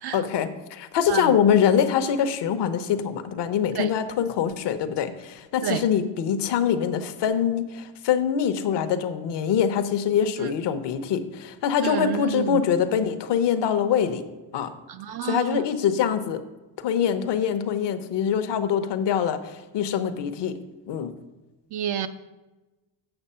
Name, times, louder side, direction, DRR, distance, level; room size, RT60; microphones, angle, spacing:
voice 1, 0.1-14.2 14.5-14.7 15.2-16.4 16.8-20.6 20.9-21.1, left 8 dB, 60° left, 10 dB, 0.9 m, -24 dB
voice 2, 11.8-12.6 14.9-15.7 21.7-22.1, right 10 dB, 55° right, 8 dB, 0.5 m, -29 dB
7.9 x 6.8 x 5.6 m, 1.1 s
cardioid pair, 125°, 47 cm